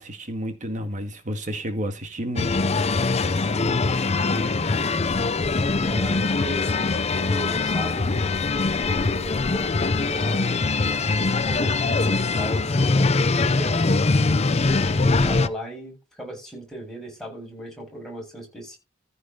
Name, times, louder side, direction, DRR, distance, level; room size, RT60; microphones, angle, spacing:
voice 1, 0.0-2.6, equal, 40° right, 2.0 m, -31 dB
sound 1, 2.4-15.5, left 3 dB, 30° left, 0.6 m, -22 dB
voice 2, 3.4-5.3 5.8-8.2 8.8-10.6 11.1-14.0 14.6-18.8, right 1 dB, ahead, 7.1 m, -37 dB
14.5 x 5.3 x 5.4 m
head